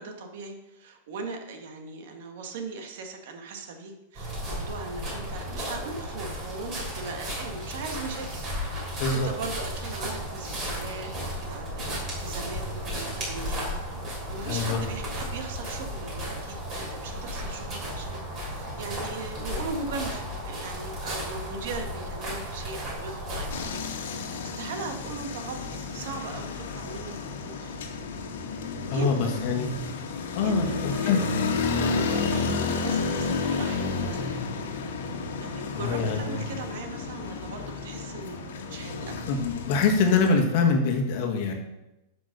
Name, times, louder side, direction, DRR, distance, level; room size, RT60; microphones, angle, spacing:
voice 1, 0.0-8.4 9.1-11.8 12.2-27.8 28.6-29.5 30.4-31.3 31.7-34.5 35.4-39.4, right 3 dB, 50° right, 5 dB, 1.5 m, -39 dB
sound 1, 4.1-23.7, equal, 20° right, 3.2 m, -34 dB
voice 2, 14.5-14.8 28.9-29.7 30.3-31.2 35.7-36.4 39.3-41.6, left 4 dB, 40° left, 3 dB, 1.6 m, -24 dB
sound 2, 23.5-40.3, left 4 dB, 85° left, 1.7 m, -31 dB
9.0 x 6.2 x 6.6 m, 0.94 s
supercardioid pair, 180°, 0 cm